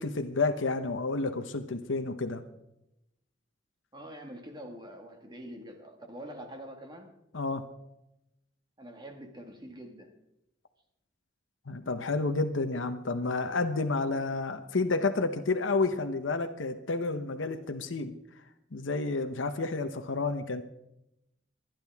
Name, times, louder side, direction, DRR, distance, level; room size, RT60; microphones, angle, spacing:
voice 1, 0.0-2.4 7.3-7.6 11.7-18.1 18.7-20.6, left 3 dB, 90° left, 7 dB, 0.9 m, -30 dB
voice 2, 3.9-7.1 8.8-10.2, equal, 25° right, 4 dB, 1.8 m, -45 dB
24.5 x 10.5 x 3.5 m, 0.86 s
head